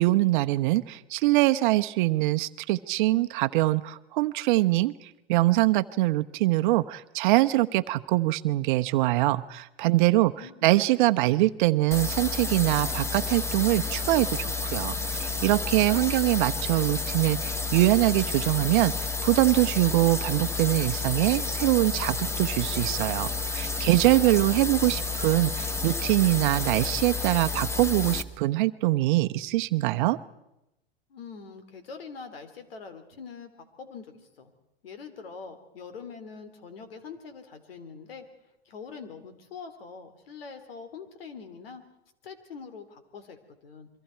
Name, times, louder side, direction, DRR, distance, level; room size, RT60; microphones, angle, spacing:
voice 1, 0.0-10.3 10.6-30.2, right 18 dB, 55° right, 10 dB, 1.0 m, -23 dB
voice 2, 10.1-10.7 24.6-24.8 31.1-33.5 33.8-34.5 34.8-38.2 38.6-41.8 42.2-43.9, left 5 dB, 70° left, 9 dB, 3.3 m, -44 dB
sound 1, 11.9-28.2, left 4 dB, 10° left, 1.2 m, -31 dB
28.0 x 24.0 x 4.6 m, 0.87 s
hypercardioid pair, 100°, 30 cm